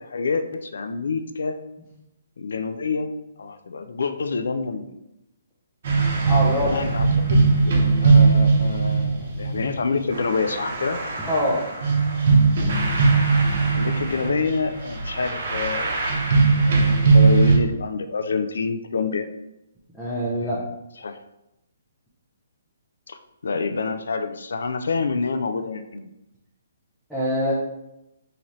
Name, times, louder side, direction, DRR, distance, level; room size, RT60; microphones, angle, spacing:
voice 1, 0.0-1.6 2.4-3.1 3.4-4.9 6.7-7.7 8.0-11.0 13.7-16.0 16.4-19.3 20.4-20.5 21.0-21.2 23.1-23.2 23.4-26.1, left 4 dB, 75° left, 8 dB, 0.4 m, -27 dB
sound 1, 5.8-17.6, right 4 dB, 40° right, 0.8 m, -20 dB
voice 2, 6.3-6.7 11.3-11.7 20.0-20.6 27.1-27.5, equal, ahead, -10 dB, 0.5 m, -24 dB
3.8 x 2.8 x 3.0 m, 0.89 s
hypercardioid pair, 175°, 0 cm